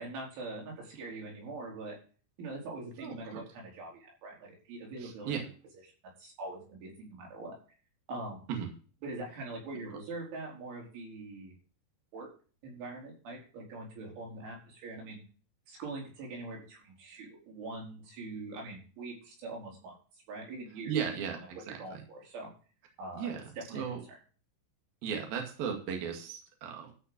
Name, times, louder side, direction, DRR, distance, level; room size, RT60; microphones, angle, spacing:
voice 1, 0.0-2.0 2.4-5.4 6.2-7.6 8.1-8.5 9.0-11.6 12.1-12.3 12.6-15.2 15.7-20.9 21.7-22.5 23.0-23.9, right 2 dB, 85° right, -2 dB, 7.1 m, -43 dB
voice 2, 3.0-3.4 5.0-5.4 8.5-8.7 20.9-22.0 23.2-24.0 25.0-26.9, right 7 dB, 60° right, 2 dB, 3.6 m, -36 dB
13.5 x 6.0 x 6.9 m, 0.38 s
omnidirectional pair, 5.3 m